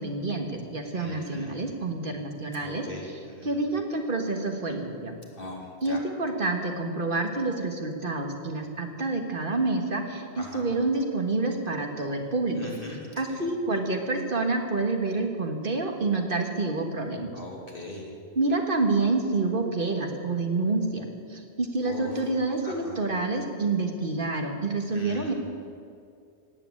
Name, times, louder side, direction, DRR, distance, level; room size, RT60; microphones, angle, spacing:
voice 1, 0.0-5.2 5.8-12.6 12.9-17.4 18.4-25.3, right 3 dB, 50° right, 3 dB, 1.8 m, -28 dB
voice 2, 1.0-1.6 2.6-3.6 5.4-5.6 5.8-6.0 10.4-10.7 12.6-13.0 13.3-13.4 17.3-18.1 21.8-22.1 22.6-23.0 24.9-25.3, left 1 dB, 55° left, -1 dB, 2.9 m, -40 dB
17.5 x 8.9 x 8.6 m, 2.4 s
omnidirectional pair, 1.1 m